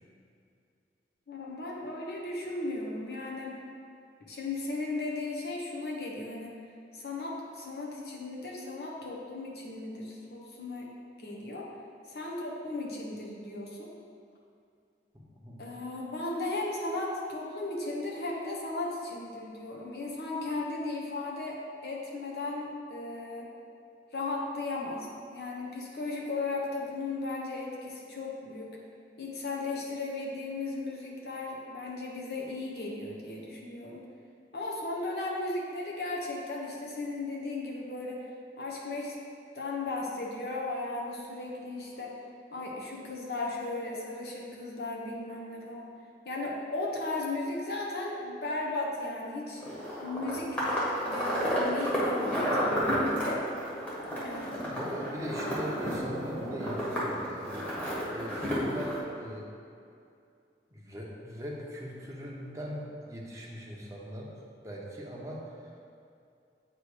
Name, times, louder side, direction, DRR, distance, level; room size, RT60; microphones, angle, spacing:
voice 1, 1.3-3.6 4.2-6.6 6.9-10.9 11.2-11.7 12.0-13.9 15.6-23.5 24.1-28.8 29.2-34.1 34.5-38.2 38.6-39.1 39.5-42.2 42.5-45.9 46.2-49.6 50.0-50.6 51.0-53.4 54.2-54.7, left 2 dB, 65° left, -3 dB, 1.0 m, -36 dB
voice 2, 15.1-15.6 54.6-57.5 57.8-59.5 60.7-64.4 64.6-65.7, equal, 20° right, -4 dB, 0.8 m, -40 dB
sound 1, 49.6-59.0, equal, 10° left, 1.2 m, -31 dB
8.1 x 3.0 x 4.8 m, 2.4 s
head